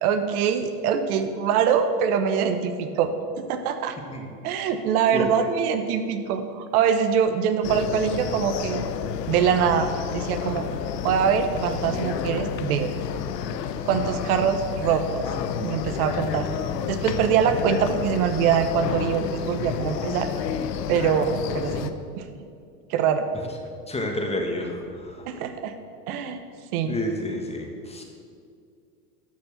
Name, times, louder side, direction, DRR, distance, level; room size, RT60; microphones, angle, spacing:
voice 1, 0.0-4.0 4.4-8.8 9.3-10.7 11.0-12.9 13.8-15.3 15.6-16.5 16.9-20.3 20.9-22.2 22.9-23.3 25.3-25.7 26.1-26.4 26.7-26.9, right 7 dB, 65° right, 8 dB, 1.0 m, -24 dB
sound 1, 7.6-21.9, left 8 dB, 85° left, 0.8 m, -30 dB
voice 2, 23.9-25.2 26.9-28.0, left 1 dB, 15° left, 2 dB, 1.4 m, -30 dB
12.5 x 4.4 x 7.1 m, 2.3 s
hypercardioid pair, 105°, 47 cm